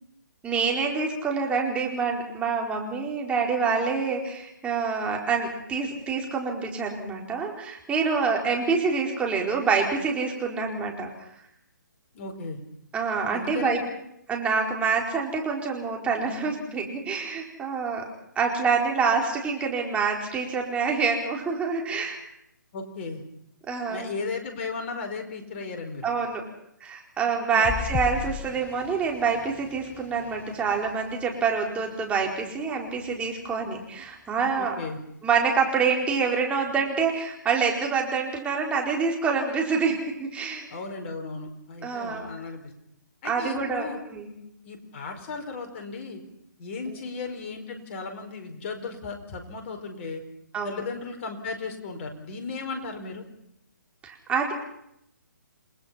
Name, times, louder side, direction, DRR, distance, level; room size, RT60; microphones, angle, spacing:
voice 1, 0.4-11.3 12.9-13.8 14.3-18.0 18.3-22.2 23.7-24.1 26.0-26.4 26.8-34.7 35.2-40.7 41.8-42.3 43.2-44.4 46.9-47.0 50.5-50.8 54.0-54.5, right 5 dB, 10° right, 0 dB, 4.5 m, -26 dB
voice 2, 12.1-12.6 13.3-13.9 22.7-23.2 23.9-26.1 27.5-27.7 34.6-35.0 40.7-42.7 43.2-44.0 44.6-46.2 46.6-50.2 50.6-53.3, left 4 dB, 35° left, 5 dB, 4.7 m, -35 dB
sound 1, 27.6-32.3 32.9-33.2 33.5-33.6, left 7 dB, 15° left, 1.0 m, -37 dB
29.5 x 20.5 x 5.8 m, 0.76 s
figure-of-eight pair, 140°, 10 cm